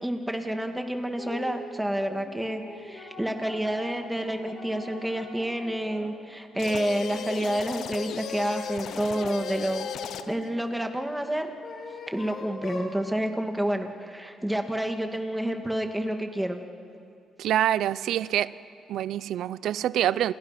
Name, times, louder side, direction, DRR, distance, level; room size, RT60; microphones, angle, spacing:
voice 1, 0.0-9.9 10.3-11.5 12.1-16.6, right 1 dB, 5° right, 5 dB, 2.3 m, -29 dB
sound 1, 1.2-1.6 2.1-6.1 6.5-8.1 8.8-10.4 11.3-13.0, left 3 dB, 55° left, 7.9 m, -42 dB
sound 2, 6.6-10.5, left 9 dB, 75° left, 0.9 m, -36 dB
voice 2, 17.4-18.5 18.9-20.3, right 11 dB, 80° right, 18 dB, 0.6 m, -26 dB
30.0 x 28.0 x 6.1 m, 2.4 s
cardioid pair, 90°, 0 cm